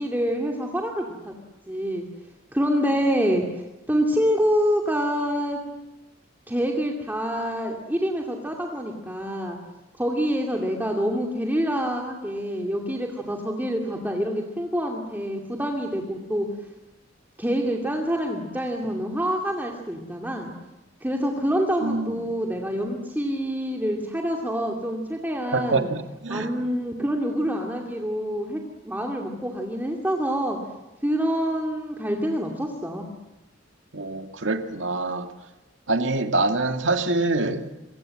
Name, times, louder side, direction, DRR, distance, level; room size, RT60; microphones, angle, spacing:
voice 1, 0.0-1.3 1.7-2.1 2.5-3.4 3.9-5.6 6.5-9.6 10.0-16.5 17.4-20.5 21.0-25.9 26.3-28.6 28.8-30.6 31.0-33.0, equal, 10° right, 2.5 m, -26 dB
voice 2, 21.8-22.1 25.5-26.5 33.9-35.3 35.9-37.6, right 2 dB, 75° right, 2.1 m, -25 dB
27.5 x 24.5 x 7.7 m
head